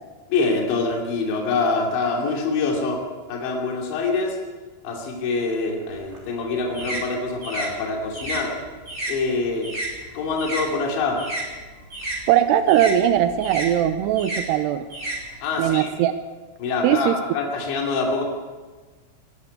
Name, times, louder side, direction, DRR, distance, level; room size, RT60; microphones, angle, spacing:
voice 1, 0.3-3.0 3.3-4.4 4.8-8.5 9.1-9.7 10.1-11.2 15.4-15.9 16.6-18.2, left 3 dB, 65° left, 0 dB, 4.8 m, -25 dB
sound 1, 5.9-10.7 11.0-15.8, right 1 dB, 15° right, 4.7 m, -32 dB
voice 2, 12.3-14.8 15.6-16.1 16.8-17.2, right 11 dB, 85° right, 9 dB, 2.4 m, -19 dB
21.5 x 12.0 x 9.7 m, 1.4 s
omnidirectional pair, 5.7 m